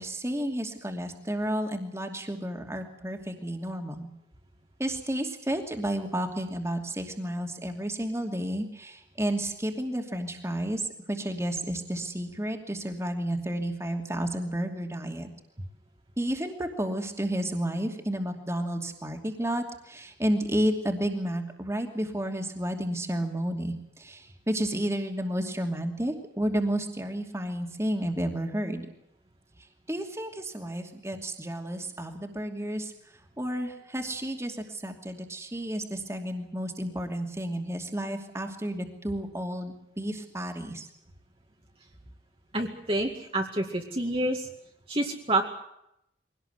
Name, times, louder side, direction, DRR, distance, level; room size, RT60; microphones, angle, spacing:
voice 1, 0.0-4.1 4.8-15.3 16.2-28.9 29.9-32.9 33.4-40.9, right 1 dB, 15° right, 4 dB, 2.6 m, -31 dB
voice 2, 42.5-44.5 44.9-45.4, right 1 dB, 30° right, 0 dB, 2.3 m, -28 dB
23.5 x 18.0 x 8.1 m, 0.79 s
head